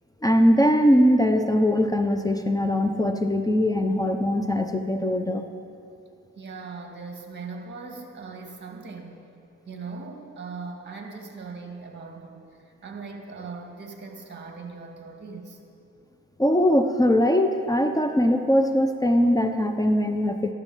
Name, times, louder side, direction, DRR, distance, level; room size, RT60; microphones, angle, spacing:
voice 1, 0.2-5.4 16.4-20.5, equal, 10° left, 7 dB, 0.8 m, -21 dB
voice 2, 6.4-9.2 9.7-15.6, right 4 dB, 35° right, 2 dB, 2.5 m, -39 dB
13.5 x 11.5 x 7.3 m, 2.6 s
cardioid pair, 90°, 30 cm